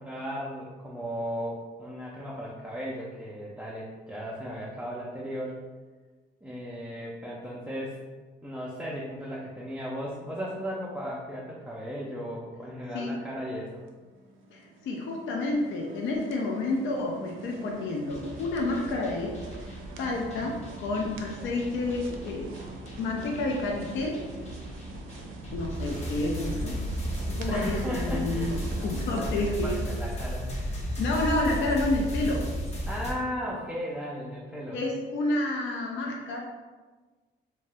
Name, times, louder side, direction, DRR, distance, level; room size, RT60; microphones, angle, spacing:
voice 1, 0.0-5.6 6.4-8.0 8.4-13.8 27.5-28.6 29.1-29.3 29.6-30.8 32.9-34.8, equal, 5° right, -5 dB, 0.4 m, -36 dB
sound 1, 13.9-29.7, right 3 dB, 90° right, 0.4 m, -44 dB
voice 2, 14.5-19.4 19.6-22.5 23.0-24.2 25.5-26.7 27.3-28.5 28.8-29.8 30.9-32.4 34.7-36.4, left 2 dB, 70° left, -1 dB, 0.4 m, -29 dB
sound 2, 18.1-33.1, equal, 35° left, 0.7 m, -35 dB
2.7 x 2.1 x 3.2 m, 1.3 s
cardioid pair, 90°, 20 cm